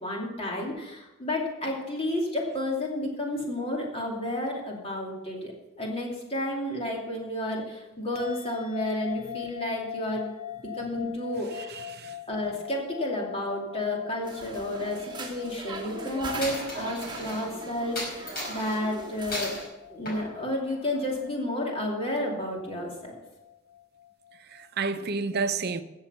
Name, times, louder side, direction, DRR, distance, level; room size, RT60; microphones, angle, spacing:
voice 1, 0.0-5.5 5.8-10.3 10.8-11.8 12.3-19.6 19.9-23.2, left 1 dB, 30° left, 2.6 m, -31 dB
sound 1, 8.1-24.7, left 11 dB, 80° left, 1.5 m, -43 dB
voice 2, 11.5-12.1 24.5-25.8, right 4 dB, 55° right, 0.7 m, -30 dB
sound 2, 14.2-19.6, right 2 dB, 25° right, 2.1 m, -39 dB
Coin (dropping), 16.4-17.4 18.0-18.8 19.3-19.7 20.1-21.1, left 1 dB, 50° left, 5.0 m, -36 dB
15.0 x 7.2 x 5.5 m
head